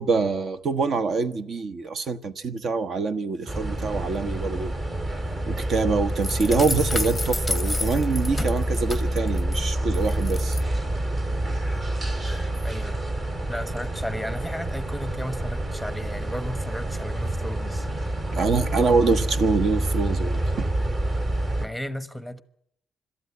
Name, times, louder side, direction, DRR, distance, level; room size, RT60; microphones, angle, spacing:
voice 1, 0.0-4.7 5.5-10.6 18.3-20.7, right 4 dB, 60° right, 1.1 m, -25 dB
sound 1, 3.5-21.7, right 1 dB, 35° right, 3.0 m, -27 dB
sound 2, 6.2-9.6 9.9-10.6, left 2 dB, 15° left, 0.7 m, -31 dB
voice 2, 12.2-13.0 13.5-17.9 21.6-22.4, equal, ahead, 1.1 m, -34 dB
21.5 x 13.0 x 9.5 m
cardioid pair, 90°, 0 cm